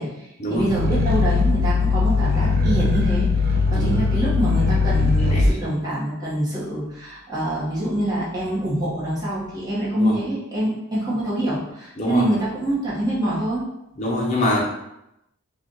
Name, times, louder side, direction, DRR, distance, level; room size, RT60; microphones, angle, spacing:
voice 1, 0.0-13.6, right 1 dB, 20° right, -9 dB, 1.6 m, -25 dB
Growling, 0.6-5.5, left 3 dB, 45° right, 0.5 m, -20 dB
voice 2, 14.0-14.6, left 1 dB, 30° left, -4 dB, 0.9 m, -24 dB
5.0 x 2.6 x 3.9 m, 0.85 s
head